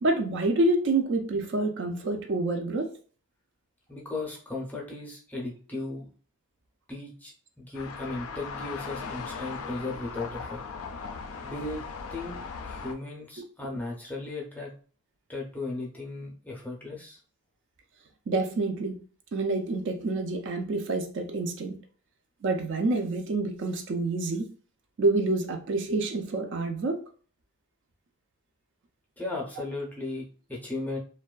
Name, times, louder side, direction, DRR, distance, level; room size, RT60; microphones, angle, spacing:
voice 1, 0.0-2.9 18.3-19.0 19.3-21.8 22.4-24.5 25.0-27.0, right 2 dB, 55° right, 4 dB, 0.4 m, -27 dB
voice 2, 3.9-6.1 6.9-10.6 11.4-11.8 12.1-12.4 12.6-14.7 15.3-17.2 29.2-31.0, left 2 dB, 10° left, -2 dB, 0.5 m, -36 dB
sound 1, 7.7-12.9, left 5 dB, 65° left, 0.3 m, -38 dB
2.5 x 2.2 x 2.3 m, 0.41 s
head